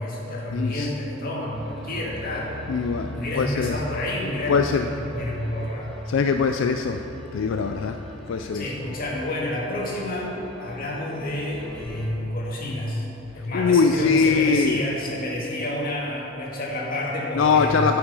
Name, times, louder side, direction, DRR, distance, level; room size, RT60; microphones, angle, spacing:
voice 1, 0.0-2.6 2.9-5.9 8.5-13.1 13.3-18.0, left 1 dB, 50° left, -4 dB, 1.9 m, -29 dB
voice 2, 0.5-0.9 2.7-3.7 4.5-4.8 6.1-7.0 7.3-8.0 8.3-8.6 13.5-14.8 17.4-18.0, left 5 dB, 80° left, 6 dB, 0.4 m, -22 dB
sound 1, 1.5-12.1, equal, 5° left, 1.6 m, -40 dB
11.5 x 5.9 x 5.4 m, 3.0 s
head